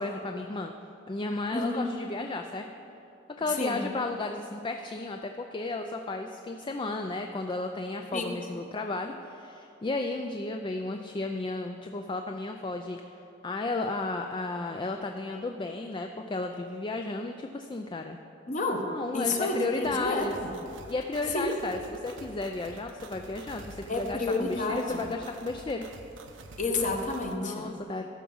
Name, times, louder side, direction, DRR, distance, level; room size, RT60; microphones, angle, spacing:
voice 1, 0.0-0.7 1.1-2.7 3.4-13.2 13.4-18.2 18.9-20.3 20.9-25.9 27.4-28.0, left 3 dB, 25° left, 5 dB, 0.4 m, -33 dB
voice 2, 1.5-1.8 3.6-3.8 8.1-8.4 18.5-18.8 19.1-20.3 21.3-21.5 23.9-25.0 26.6-27.6, left 2 dB, 40° left, 3 dB, 1.1 m, -29 dB
sound 1, 19.8-27.3, right 2 dB, 80° right, 0.8 m, -48 dB
14.0 x 6.0 x 5.4 m, 2.8 s
head